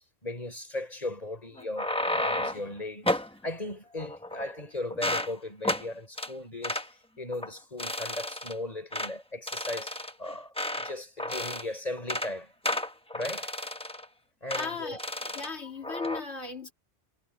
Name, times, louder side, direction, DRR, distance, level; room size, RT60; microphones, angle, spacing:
voice 1, 0.0-12.5 13.1-13.6 14.4-15.0, left 2 dB, 35° left, 5.2 m, -37 dB
sound 1, 1.6-2.7 3.1-3.3 4.0-4.6 4.9-5.3 5.6-5.9 6.2-6.3 6.6-6.9 7.3-7.5 7.8-8.5 8.9-9.1 9.5-10.9 11.2-11.7 12.0-12.3 12.6-14.1 14.5-14.7 15.0-15.5 15.8-16.2, left 1 dB, 5° left, 1.1 m, -32 dB
voice 2, 14.6-15.1 15.3-16.7, left 4 dB, 80° left, 3.3 m, -36 dB
omnidirectional pair, 1.1 m